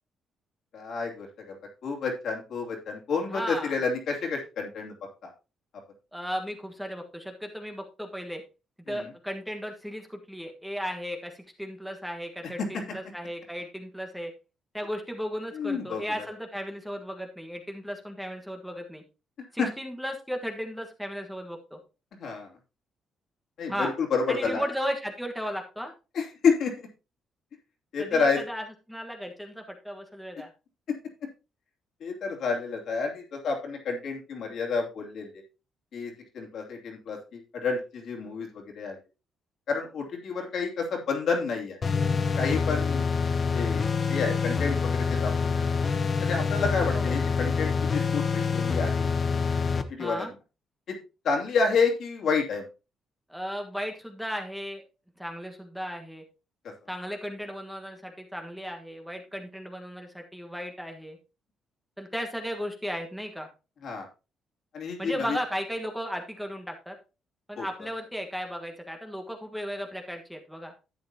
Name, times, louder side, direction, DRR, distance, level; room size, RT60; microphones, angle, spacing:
voice 1, 0.7-1.6 1.8-4.9 5.2-5.3 8.9-9.1 12.6-12.8 15.5-16.0 19.6-19.7 22.2-22.5 23.6-24.6 26.1-26.7 27.9-28.4 30.9-31.0 32.0-35.3 35.9-39.0 39.7-41.8 42.4-43.0 43.5-45.3 46.2-49.1 49.9-50.3 50.9-51.0 51.2-52.6 63.8-64.1 64.7-65.4 67.6-67.7, left 5 dB, 65° left, 0 dB, 2.8 m, -29 dB
voice 2, 3.3-3.8 6.1-8.4 8.9-14.3 14.7-19.0 19.5-21.8 23.7-23.9 24.3-25.9 28.0-30.5 46.9-47.2 50.0-50.3 53.3-54.8 55.2-56.2 56.9-61.2 62.0-63.5 65.0-67.0 67.5-70.7, equal, ahead, 3 dB, 1.5 m, -35 dB
sound 1, 41.8-49.8, left 5 dB, 40° left, 0.8 m, -26 dB
11.5 x 7.9 x 2.9 m, 0.30 s
cardioid pair, 90°, 0 cm